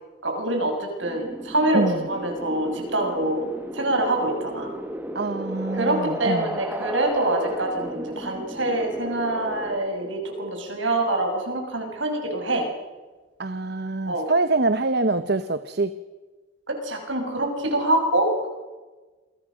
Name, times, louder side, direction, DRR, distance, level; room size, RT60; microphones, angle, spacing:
voice 1, 0.2-1.8 2.1-3.5 3.7-4.7 5.7-12.7 14.1-14.3 16.7-18.5, right 1 dB, 70° right, 3 dB, 6.3 m, -25 dB
sound 1, 1.0-9.8, right 1 dB, 10° right, 1.6 m, -34 dB
voice 2, 1.7-2.1 5.1-6.6 13.4-16.0, right 3 dB, 50° right, 12 dB, 0.9 m, -25 dB
28.0 x 23.0 x 6.3 m, 1.3 s
head